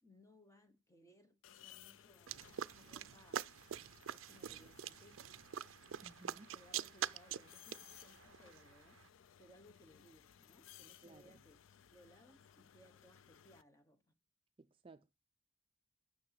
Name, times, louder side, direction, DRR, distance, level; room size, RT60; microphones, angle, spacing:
voice 1, 0.0-3.6 4.1-5.3 6.5-9.0 9.4-11.6 11.9-14.0, equal, 15° left, 1.1 m, -65 dB
sound 1, 1.4-13.6, left 10 dB, 80° left, 0.4 m, -62 dB
sound 2, 2.3-9.0, right 9 dB, 85° right, 0.4 m, -45 dB
voice 2, 6.0-6.5 11.0-11.4 14.6-15.1, right 2 dB, 25° right, 0.4 m, -59 dB
9.5 x 6.1 x 5.8 m
head